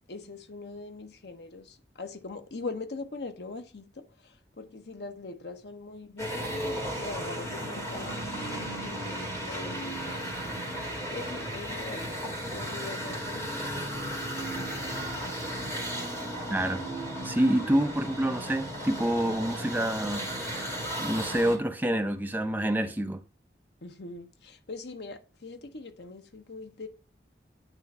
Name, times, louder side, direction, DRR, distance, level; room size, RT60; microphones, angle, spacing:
voice 1, 0.1-10.5 11.1-15.1 15.9-16.5 23.8-26.9, left 3 dB, 75° left, 0.9 m, -42 dB
sound 1, 6.2-21.6, right 1 dB, 15° left, 2.1 m, -35 dB
voice 2, 17.2-20.6 21.0-23.2, right 1 dB, 10° right, 0.6 m, -27 dB
9.2 x 3.2 x 5.3 m
head